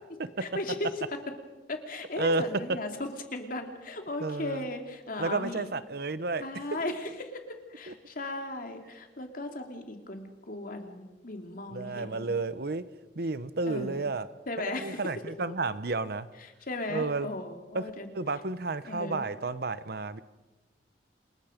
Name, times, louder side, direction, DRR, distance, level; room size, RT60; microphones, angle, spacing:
voice 1, 0.4-0.9 1.7-5.7 6.4-7.3 7.7-12.4 13.7-14.1 14.5-15.0 16.4-18.1 18.8-19.3, left 2 dB, 55° left, 5 dB, 2.7 m, -37 dB
voice 2, 4.2-4.7 5.2-6.4 7.9-8.0 11.7-12.8 13.1-14.3 14.8-16.3 16.9-17.3 17.7-17.8 18.1-20.2, right 3 dB, 60° right, 14 dB, 0.9 m, -31 dB
28.0 x 21.0 x 5.2 m, 1.1 s
head